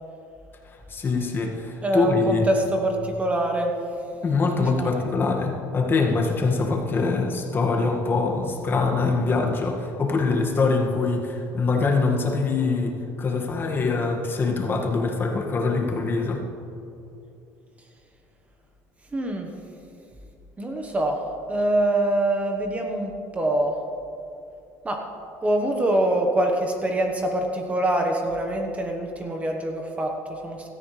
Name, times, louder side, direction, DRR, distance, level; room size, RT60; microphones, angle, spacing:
voice 1, 0.6-2.5 4.2-16.4, left 4 dB, 30° left, 1 dB, 1.8 m, -24 dB
voice 2, 1.8-3.7 4.6-4.9 19.1-19.5 20.6-23.7 24.8-25.0 25.4-30.7, right 1 dB, 20° right, 3 dB, 1.2 m, -24 dB
17.0 x 13.5 x 3.3 m, 2.7 s
cardioid pair, 125°, 7 cm